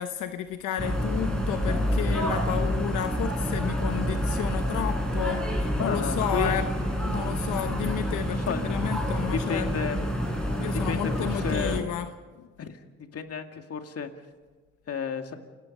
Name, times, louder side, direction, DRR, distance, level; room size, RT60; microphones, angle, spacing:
voice 1, 0.0-6.7 7.0-9.9 10.6-12.5, left 10 dB, 85° left, 8 dB, 1.1 m, -32 dB
sound 1, 0.8-11.8, equal, ahead, 6.4 m, -28 dB
voice 2, 5.8-6.6 8.3-8.7 9.3-10.0 10.8-11.8 12.6-12.8 13.1-14.1 14.9-15.3, left 6 dB, 50° left, 5 dB, 2.2 m, -32 dB
28.5 x 18.5 x 5.4 m, 1.3 s
cardioid pair, 90°, 30 cm